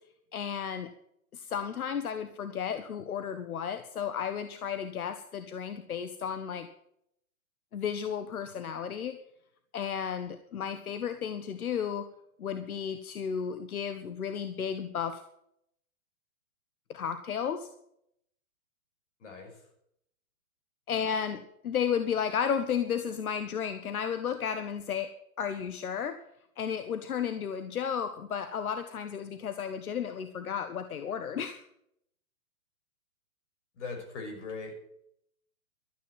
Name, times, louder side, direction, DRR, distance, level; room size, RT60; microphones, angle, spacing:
voice 1, 0.3-0.9 1.3-6.7 7.7-9.2 9.7-12.1 12.4-15.2 16.9-17.7 20.9-25.1 25.4-26.2 26.6-31.6, left 7 dB, 85° left, 10 dB, 1.3 m, -33 dB
voice 2, 19.2-19.6 33.8-34.8, left 3 dB, 55° left, 3 dB, 6.0 m, -40 dB
13.0 x 8.2 x 9.3 m, 0.74 s
hypercardioid pair, 155°, 42 cm